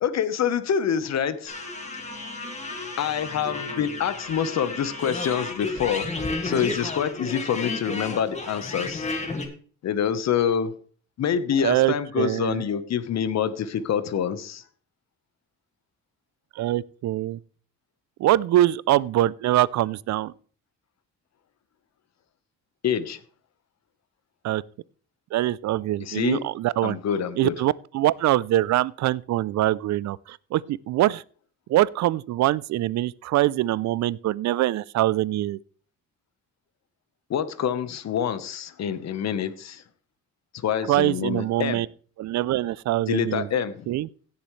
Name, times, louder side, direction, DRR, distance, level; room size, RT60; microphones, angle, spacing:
voice 1, 0.0-1.6 3.0-6.1 6.4-9.1 9.8-10.7 11.2-14.6 22.8-23.2 26.0-26.4 26.8-27.5 37.3-39.8 40.6-41.8 43.1-43.9, left 8 dB, 60° left, 1.1 m, -26 dB
sound 1, 1.5-9.5, left 3 dB, 25° left, 2.2 m, -32 dB
voice 2, 11.6-12.6 16.6-17.4 18.2-20.3 24.4-24.6 25.3-27.0 27.4-31.2 31.7-35.6 40.9-41.9 42.2-44.1, right 14 dB, 65° right, 0.5 m, -24 dB
16.5 x 7.2 x 3.2 m
cardioid pair, 90°, 30 cm